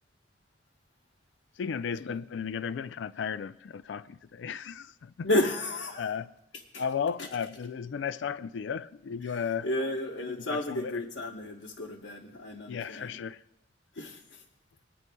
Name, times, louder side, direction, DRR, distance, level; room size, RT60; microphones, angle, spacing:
voice 1, 1.6-5.3 6.0-6.3 6.8-9.7 10.2-11.0 12.7-13.4, left 6 dB, 65° left, 0.3 m, -35 dB
voice 2, 5.2-6.1 6.7-6.8 7.2-7.3 9.2-13.2 13.9-14.4, left 1 dB, 80° left, 1.0 m, -32 dB
22.5 x 9.4 x 2.3 m
head